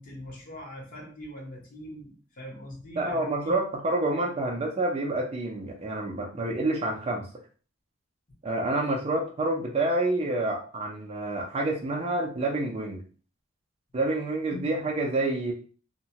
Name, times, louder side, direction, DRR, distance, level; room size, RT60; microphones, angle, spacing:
voice 1, 0.0-3.6 14.5-14.7, left 1 dB, 40° left, -1 dB, 1.0 m, -42 dB
voice 2, 3.0-7.2 8.4-13.0 13.9-15.5, right 2 dB, 30° right, 0 dB, 0.5 m, -28 dB
2.8 x 2.2 x 2.8 m, 0.39 s
head